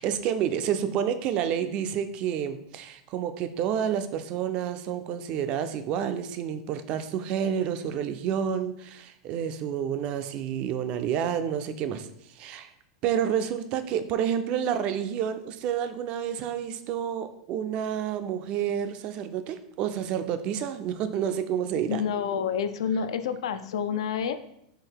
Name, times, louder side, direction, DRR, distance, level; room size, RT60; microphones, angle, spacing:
voice 1, 0.0-12.1 12.4-12.7 13.0-22.0, right 9 dB, 35° right, 10 dB, 0.4 m, -29 dB
voice 2, 21.9-24.3, left 7 dB, 80° left, 10 dB, 0.4 m, -28 dB
3.8 x 2.9 x 4.5 m, 0.77 s
supercardioid pair, 150°, 3 cm